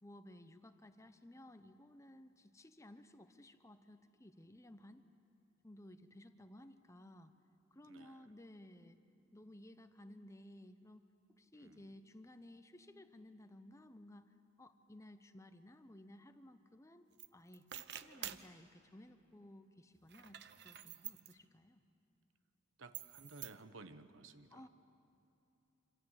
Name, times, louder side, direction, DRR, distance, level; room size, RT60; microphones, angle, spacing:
voice 1, 0.0-5.0 5.6-7.3 7.7-9.0 9.3-11.1 11.4-14.3 14.6-21.8 24.5-24.7, left 1 dB, 15° left, 9 dB, 0.9 m, -57 dB
voice 2, 7.8-8.3 11.5-12.0 22.8-24.7, right 3 dB, 85° right, 10 dB, 1.1 m, -56 dB
sound 1, 17.2-17.3 17.5-18.5 20.0-21.3 22.9-23.6, right 11 dB, 60° right, 0.8 m, -48 dB
26.5 x 26.5 x 8.2 m, 2.7 s
head